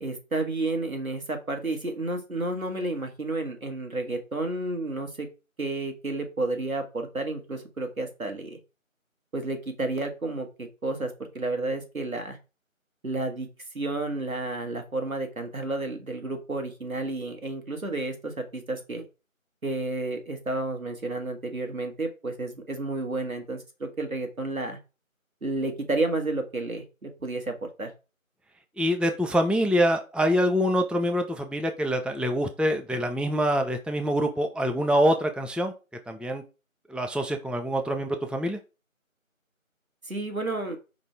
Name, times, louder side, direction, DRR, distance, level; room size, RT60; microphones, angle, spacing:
voice 1, 0.0-5.3 5.6-8.6 9.3-12.4 13.0-13.5 13.7-19.1 19.6-24.8 25.4-27.9 40.0-40.8, right 2 dB, 85° right, 5 dB, 1.4 m, -31 dB
voice 2, 28.8-35.7 36.1-36.4 36.9-38.6, equal, 5° right, 5 dB, 0.4 m, -25 dB
5.2 x 2.6 x 3.3 m, 0.30 s
figure-of-eight pair, 180°, 41 cm